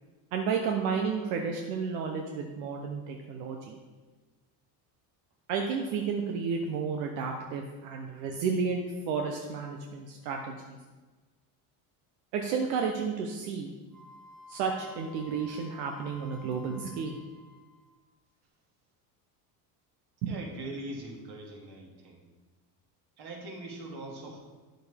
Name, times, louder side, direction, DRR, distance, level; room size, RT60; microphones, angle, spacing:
voice 1, 0.3-3.8 5.5-10.8 12.3-13.7 14.5-17.2 20.2-20.4, right 5 dB, 85° right, 2 dB, 1.0 m, -32 dB
Wind instrument woodwind instrument, 13.9-18.1, left 3 dB, ahead, 1.2 m, -52 dB
voice 2, 20.2-22.2 23.2-24.4, right 2 dB, 55° right, 0 dB, 2.3 m, -41 dB
9.1 x 7.7 x 3.5 m, 1.3 s
supercardioid pair, 100°, 47 cm